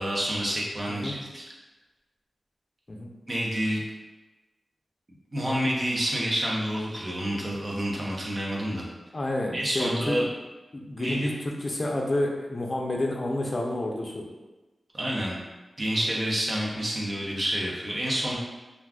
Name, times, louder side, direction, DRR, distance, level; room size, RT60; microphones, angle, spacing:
voice 1, 0.0-1.4 3.3-3.8 5.3-8.8 9.5-10.3 11.0-11.3 14.9-15.4 15.8-18.4, equal, 40° right, -3 dB, 0.8 m, -28 dB
voice 2, 9.1-10.2 10.7-11.3 11.6-14.2, left 1 dB, 45° left, -1 dB, 0.5 m, -29 dB
2.4 x 2.3 x 3.4 m, 1.1 s
cardioid pair, 55°, 0 cm